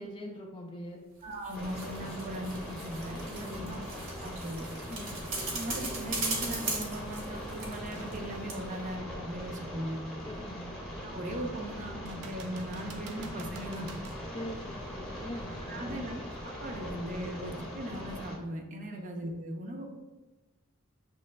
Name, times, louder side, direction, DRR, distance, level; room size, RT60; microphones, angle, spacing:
voice 1, 0.0-1.0 3.4-3.8 4.9-5.2 10.3-10.7 14.3-16.1 18.9-19.1, equal, 20° left, -2 dB, 0.4 m, -43 dB
voice 2, 1.2-3.8 4.2-4.6 5.5-10.0 11.0-13.9 15.6-16.1 16.4-19.9, equal, 35° right, 3 dB, 0.6 m, -39 dB
sound 1, 1.2-8.2 8.5-8.6, right 3 dB, 60° right, 1.0 m, -38 dB
sound 2, 1.5-18.4, equal, 5° left, 0.8 m, -41 dB
sound 3, 7.9-8.2 8.8-8.9 12.0-14.3 17.9-18.0, right 4 dB, 90° right, 0.5 m, -48 dB
6.5 x 3.0 x 2.2 m, 1.1 s
head